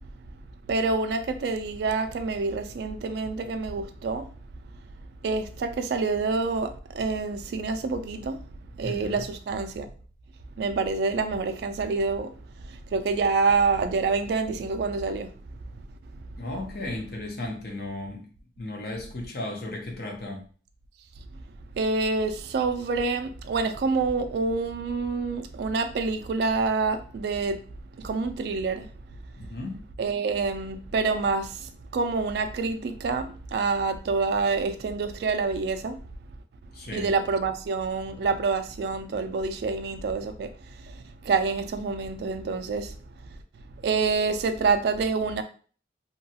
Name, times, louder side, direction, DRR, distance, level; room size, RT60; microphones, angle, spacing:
voice 1, 0.7-4.3 5.2-8.5 8.8-9.9 10.6-12.3 12.6-15.3 16.1-16.2 21.7-27.6 28.0-28.9 30.0-36.0 36.9-42.9 43.2-43.3 43.8-45.4, right 4 dB, 65° right, 0.3 m, -27 dB
voice 2, 8.8-9.2 16.4-18.3 18.6-20.4 29.4-29.8 36.7-37.1, left 2 dB, 60° left, 0.7 m, -35 dB
2.8 x 2.3 x 2.7 m
head